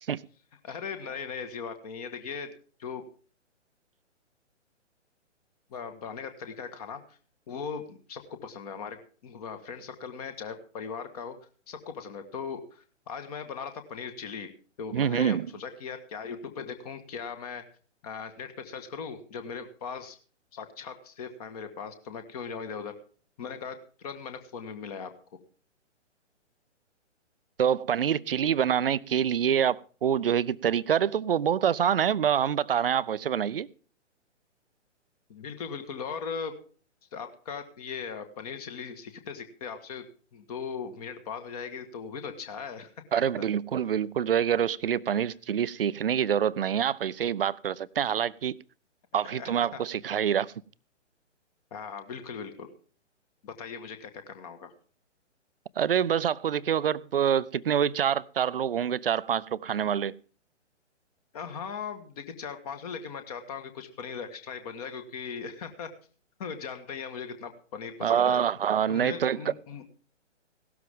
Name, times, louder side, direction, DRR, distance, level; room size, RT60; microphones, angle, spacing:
voice 1, 0.6-2.5 2.8-3.0 5.7-7.0 7.5-11.3 11.7-14.5 14.8-17.6 18.0-20.2 20.5-22.9 23.4-25.1 35.3-36.5 37.1-40.0 40.3-42.9 45.1-45.2 49.3-49.5 51.7-52.7 53.4-54.7 61.3-65.9 66.4-68.4 68.9-69.8, left 6 dB, 30° left, 1.6 m, -39 dB
voice 2, 14.9-15.5 27.6-33.7 43.1-48.6 49.1-50.5 55.8-60.1 68.0-69.5, right 8 dB, 50° right, 0.5 m, -26 dB
16.5 x 12.5 x 3.6 m
figure-of-eight pair, 125°, 37 cm